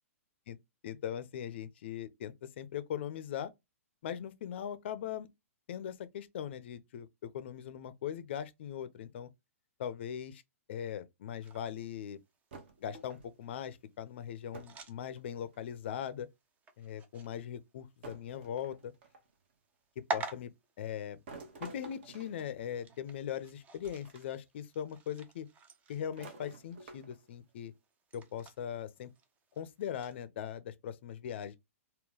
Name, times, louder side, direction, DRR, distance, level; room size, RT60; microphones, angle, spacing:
voice 1, 0.8-3.5 4.0-5.3 5.7-9.3 9.8-10.4 10.7-12.2 12.8-16.3 16.8-18.9 20.1-20.5 20.8-21.2 21.6-25.5 25.9-27.7 28.1-29.1 29.6-31.6, left 9 dB, 50° left, 0.5 m, -40 dB
sound 1, 11.4-30.2, right 4 dB, 20° right, 0.6 m, -49 dB
sound 2, 12.5-13.5 14.5-14.9 15.2-15.8 16.8-16.9 18.0-19.3 21.3-23.1 23.8-24.2 24.6-24.7 25.9-27.3, right 3 dB, 45° right, 1.0 m, -51 dB
3.7 x 2.2 x 3.7 m
figure-of-eight pair, 115°, 8 cm